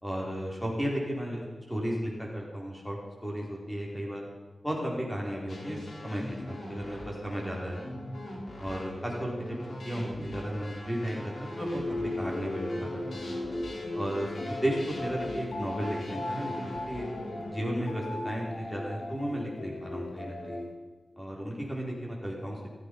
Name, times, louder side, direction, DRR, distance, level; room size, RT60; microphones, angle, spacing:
voice 1, 0.0-4.3 4.6-7.8 8.6-9.6 9.8-13.2 13.9-17.1 17.5-20.6 21.2-22.7, equal, 5° left, -2 dB, 4.9 m, -34 dB
sound 1, 5.5-17.5, left 1 dB, 85° left, 4.0 m, -42 dB
sound 2, 11.6-20.7, left 2 dB, 65° left, 2.4 m, -36 dB
15.5 x 14.5 x 5.7 m, 1.3 s
wide cardioid pair, 95°, 0 cm